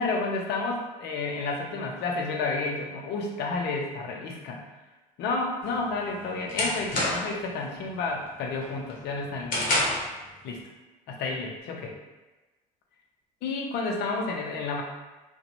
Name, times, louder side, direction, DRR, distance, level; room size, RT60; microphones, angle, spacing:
voice 1, 0.0-4.6 5.2-9.7 10.4-10.6 11.1-11.9 13.4-14.8, left 3 dB, 70° left, 1 dB, 0.5 m, -30 dB
sound 1, 5.7-7.5 7.9-8.2 8.6-10.2, left 1 dB, 50° left, 0.9 m, -28 dB
2.5 x 2.1 x 2.9 m, 1.1 s
supercardioid pair, 65°, 18 cm